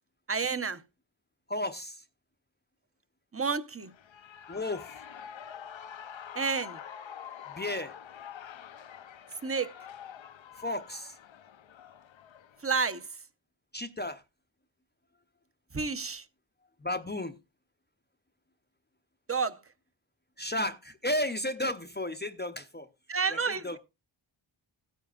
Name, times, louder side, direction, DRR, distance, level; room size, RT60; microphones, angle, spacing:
voice 1, 0.3-0.8 3.3-3.9 6.3-6.8 9.4-9.7 12.6-13.1 15.7-16.2 19.3-19.6 23.1-23.8, right 5 dB, 30° right, 0.8 m, -30 dB
voice 2, 1.5-2.0 4.5-5.0 7.5-7.9 10.6-11.2 13.7-14.2 16.8-17.4 20.4-22.9 23.3-23.8, left 1 dB, 20° left, 0.6 m, -33 dB
Shout / Cheering, 3.8-12.7, left 9 dB, 65° left, 0.6 m, -46 dB
16.5 x 9.1 x 2.4 m
wide cardioid pair, 105°, 49 cm